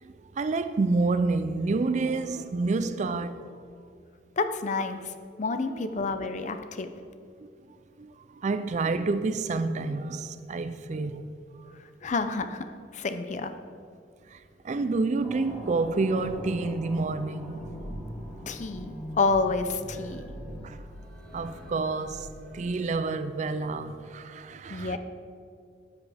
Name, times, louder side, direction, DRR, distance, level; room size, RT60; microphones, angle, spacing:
voice 1, 0.0-3.5 4.9-5.0 5.7-5.8 6.4-6.5 7.4-7.5 8.0-11.3 11.6-11.7 14.3-17.6 20.6-20.8 21.3-25.0, right 3 dB, 40° right, 0.4 m, -29 dB
voice 2, 4.4-6.9 12.0-12.7 12.9-13.5 18.5-20.3 24.7-25.0, left 3 dB, 40° left, 0.5 m, -29 dB
sound 1, 15.2-24.0, equal, 5° left, 1.3 m, -41 dB
12.0 x 8.3 x 3.4 m
head